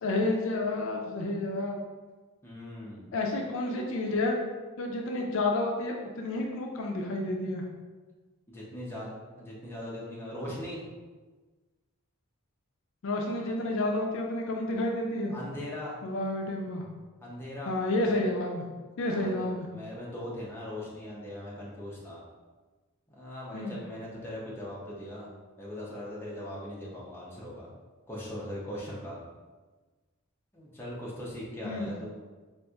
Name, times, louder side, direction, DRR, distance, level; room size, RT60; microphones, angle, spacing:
voice 1, 0.0-1.8 3.1-4.4 4.8-7.6 13.0-15.3 16.0-16.9 17.7-18.7 19.0-19.7 23.5-23.8 31.6-31.9, left 2 dB, 60° left, 1 dB, 0.4 m, -30 dB
voice 2, 2.4-3.1 8.5-9.1 9.4-10.8 15.3-16.0 17.2-17.7 19.1-22.2 23.1-25.3 25.6-27.7 28.1-29.2 30.5-32.1, left 1 dB, 10° left, -6 dB, 0.6 m, -40 dB
4.1 x 2.4 x 2.3 m, 1.3 s
head